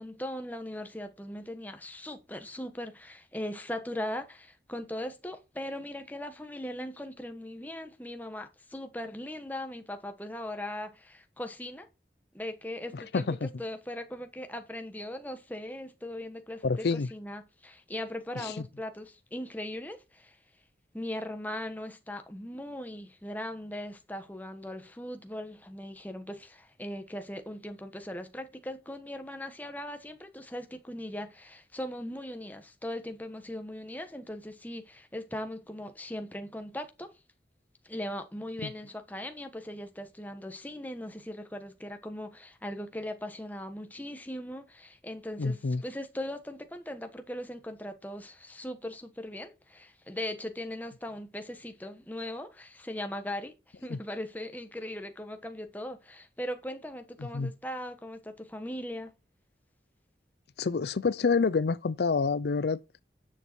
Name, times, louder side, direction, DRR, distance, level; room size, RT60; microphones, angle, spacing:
voice 1, 0.0-11.9 12.3-16.9 17.1-20.4 20.9-37.1 37.8-59.1, left 1 dB, 10° left, 1.1 m, -39 dB
voice 2, 12.9-13.5 16.6-17.1 18.4-18.6 38.6-38.7 45.4-45.8 53.9-54.0 57.2-57.5 60.6-62.8, left 4 dB, 70° left, 0.5 m, -28 dB
10.0 x 6.5 x 4.4 m
head